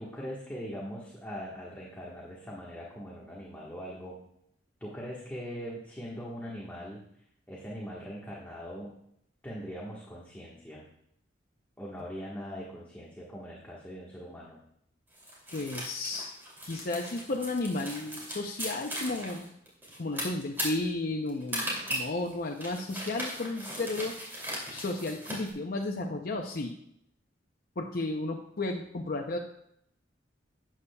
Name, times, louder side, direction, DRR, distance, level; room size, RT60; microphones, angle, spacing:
voice 1, 0.0-4.2 4.8-7.0 7.5-8.9 9.4-10.9 11.8-14.6, equal, 10° left, -5 dB, 1.4 m, -41 dB
sound 1, 15.1-25.5, equal, 10° right, 2.7 m, -38 dB
voice 2, 15.5-16.3 16.6-19.4 20.0-24.2 24.7-26.8 27.8-29.4, left 2 dB, 55° left, 1 dB, 0.7 m, -33 dB
12.0 x 8.4 x 2.3 m, 0.72 s
head